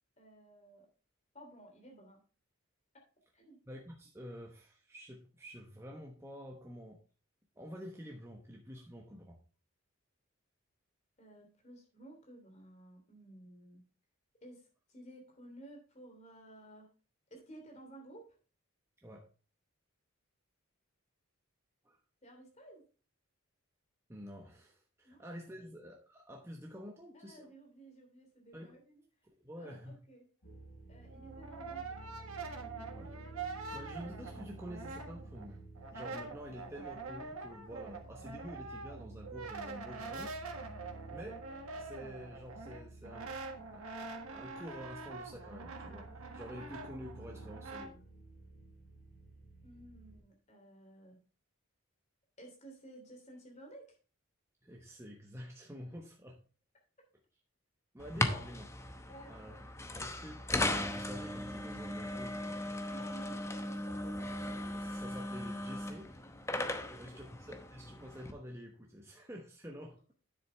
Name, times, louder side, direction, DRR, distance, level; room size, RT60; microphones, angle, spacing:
voice 1, 0.2-0.9 1.3-2.2 3.3-3.6 11.2-13.8 14.4-16.9 17.3-18.3 22.2-22.8 25.0-25.2 27.1-29.0 29.5-30.3 30.9-32.1 49.6-51.2 52.4-54.0 58.2-58.5 59.1-59.3 62.9-64.3 66.8-67.3, right 1 dB, 30° left, 1 dB, 3.1 m, -54 dB
voice 2, 3.7-7.0 7.6-9.4 19.0-19.2 21.8-22.0 24.1-27.5 28.5-28.8 29.4-30.0 32.9-33.2 33.7-35.6 35.9-40.3 41.1-41.4 41.8-43.3 43.7-48.0 54.6-56.4 57.9-58.7 59.3-59.7 60.0-60.4 60.7-62.6 64.7-66.2 67.0-70.0, equal, 10° right, 0 dB, 1.1 m, -48 dB
sound 1, 30.4-50.2, right 2 dB, 90° left, 4.8 m, -52 dB
Brass instrument, 31.1-35.5 35.8-47.9, right 3 dB, 80° right, 1.6 m, -45 dB
sound 2, 58.0-68.3, left 1 dB, 15° left, 0.8 m, -38 dB
9.8 x 7.9 x 3.4 m, 0.37 s
head